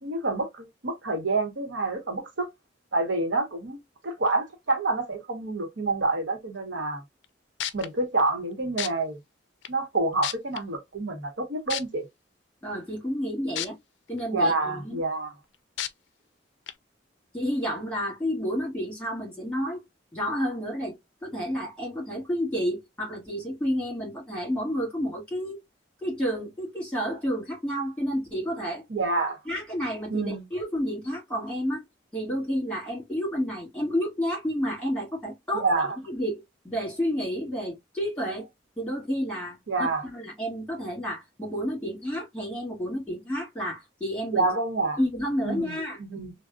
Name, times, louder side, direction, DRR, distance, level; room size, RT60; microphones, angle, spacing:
voice 1, 0.0-2.5 2.9-7.0 7.7-9.2 9.7-12.1 14.3-15.3 28.9-29.4 30.1-30.4 35.5-36.0 39.7-40.0 44.3-45.0 45.4-46.3, right 3 dB, 85° right, 1.0 m, -28 dB
sound 1, 7.2-7.3 7.6-7.9 8.8-8.9 9.6-9.7 10.2-10.6 11.7-11.8 13.6-13.7 14.2-14.3 15.8-15.9 16.7-16.8, left 11 dB, 70° left, 0.4 m, -30 dB
voice 2, 12.6-13.8 14.1-15.0 17.3-19.8 20.1-21.0 21.2-25.6 26.0-28.8 29.5-31.8 32.1-35.7 36.1-38.5 38.8-44.5 45.0-46.0, equal, 5° left, 1.9 m, -30 dB
3.7 x 2.2 x 2.3 m
head